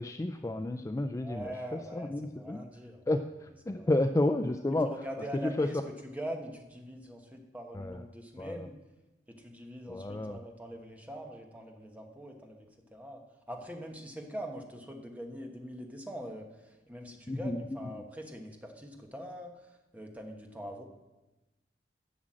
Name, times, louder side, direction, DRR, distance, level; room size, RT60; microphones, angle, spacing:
voice 1, 0.0-2.6 3.1-4.9 5.4-5.7 7.7-8.0 8.4-8.7 9.9-10.4 17.3-17.6, left 2 dB, 20° left, 8 dB, 0.3 m, -31 dB
voice 2, 1.2-3.2 3.7-4.0 4.9-8.7 9.3-13.2 13.5-20.8, equal, 10° right, 2 dB, 1.2 m, -43 dB
11.5 x 6.2 x 7.5 m, 1.1 s
head